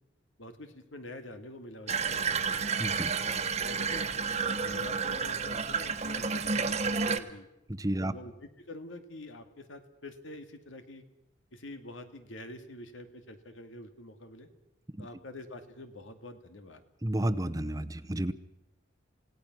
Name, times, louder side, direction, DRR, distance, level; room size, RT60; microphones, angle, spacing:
voice 1, 0.4-2.6 3.2-7.5 8.0-11.0 11.5-14.5 15.0-16.8, left 1 dB, 90° left, 7 dB, 2.3 m, -46 dB
Water tap faucet / Bathtub (filling or washing), 1.9-7.2, right 5 dB, 35° right, 1.3 m, -30 dB
voice 2, 2.8-3.1 7.7-8.1 15.0-15.1 17.0-18.3, right 1 dB, 20° right, 11 dB, 0.8 m, -31 dB
28.5 x 17.5 x 6.2 m, 0.91 s
head